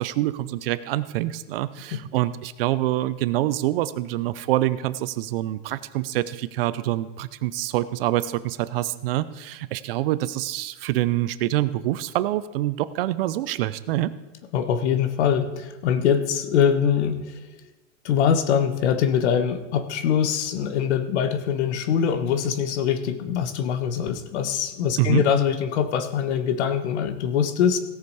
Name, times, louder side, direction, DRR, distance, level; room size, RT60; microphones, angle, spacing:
voice 1, 0.0-14.1 25.0-25.2, right 15 dB, 50° right, 15 dB, 0.6 m, -26 dB
voice 2, 14.5-17.4 18.0-27.8, left 8 dB, 60° left, 10 dB, 1.3 m, -23 dB
16.5 x 7.0 x 4.8 m, 1.1 s
supercardioid pair, 155°, 38 cm